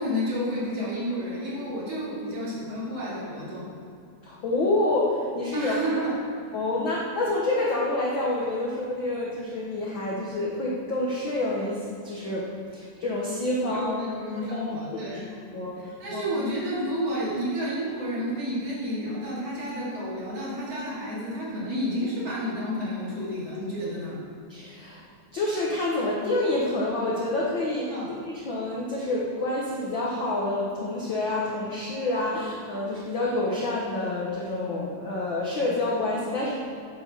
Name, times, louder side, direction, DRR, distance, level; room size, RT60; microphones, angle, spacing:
voice 1, 0.0-3.7 5.5-6.1 6.5-6.6 13.5-15.3 15.8-24.2 27.9-28.1, equal, 45° right, -7 dB, 3.6 m, -30 dB
voice 2, 4.2-6.1 6.5-14.1 14.5-15.2 15.5-15.8 16.1-16.3 24.5-25.0 25.3-27.9 28.2-36.6, left 2 dB, 65° left, -4 dB, 1.2 m, -28 dB
9.2 x 7.2 x 6.6 m, 2.5 s
omnidirectional pair, 4.0 m